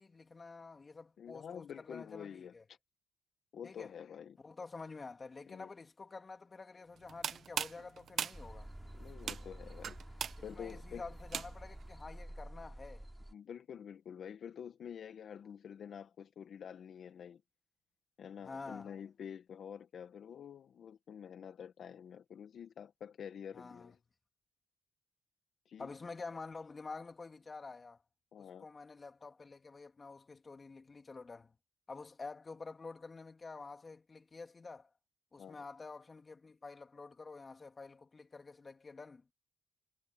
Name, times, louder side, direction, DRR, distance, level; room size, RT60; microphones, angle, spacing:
voice 1, 0.0-2.6 3.6-3.9 4.4-8.7 10.5-13.1 18.4-18.9 23.5-23.9 25.8-28.0 28.4-31.6 31.9-34.9 35.3-39.3, left 4 dB, 30° left, 3.3 m, -49 dB
voice 2, 1.2-2.8 3.5-4.4 4.7-4.8 5.5-5.7 8.9-11.1 13.3-17.4 18.2-24.0 25.6-25.9 28.3-28.6 35.4-35.6, left 8 dB, 60° left, 1.4 m, -48 dB
sound 1, 7.0-11.8, right 8 dB, 60° right, 1.7 m, -41 dB
sound 2, 8.3-13.3, right 1 dB, 5° right, 7.0 m, -50 dB
cardioid pair, 90°, 0 cm